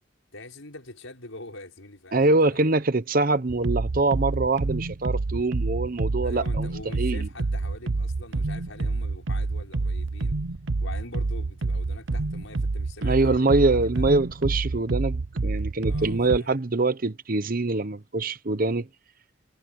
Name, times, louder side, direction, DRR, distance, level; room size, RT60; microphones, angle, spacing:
voice 1, 0.3-2.8 6.2-10.4 10.8-14.1 15.9-16.6, left 2 dB, 85° left, 5.6 m, -44 dB
voice 2, 2.1-6.7 7.0-7.3 13.0-18.9, right 2 dB, 45° right, 0.9 m, -24 dB
sound 1, 3.5-16.4, right 3 dB, 75° right, 0.8 m, -28 dB
head